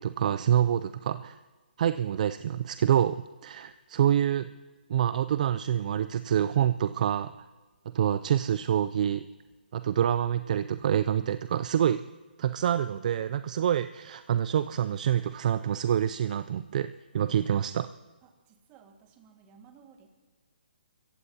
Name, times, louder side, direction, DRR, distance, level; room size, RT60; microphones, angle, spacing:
voice 1, 0.0-1.4 1.8-4.5 4.9-7.5 7.9-9.2 9.7-12.0 12.4-17.9, right 10 dB, 45° right, 13 dB, 0.3 m, -27 dB
voice 2, 18.2-20.1, right 6 dB, 25° right, 4 dB, 1.8 m, -56 dB
27.5 x 15.0 x 2.8 m, 1.3 s
hypercardioid pair, 155°, 5 cm